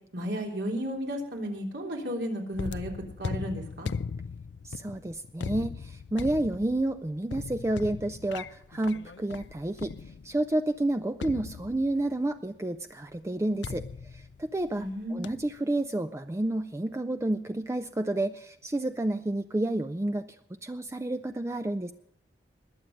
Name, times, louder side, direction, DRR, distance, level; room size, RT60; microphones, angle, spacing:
voice 1, 0.1-2.9 3.2-3.9 14.8-15.3, equal, 80° right, 0 dB, 3.5 m, -33 dB
sound 1, 2.5-10.5 11.2-12.2 13.6-14.9 15.2-15.6, left 5 dB, 85° left, 0.4 m, -39 dB
voice 2, 4.6-9.9 10.2-13.9 14.1-20.3 20.6-21.9, right 1 dB, 15° right, 9 dB, 0.4 m, -30 dB
21.0 x 7.7 x 5.3 m, 0.77 s
head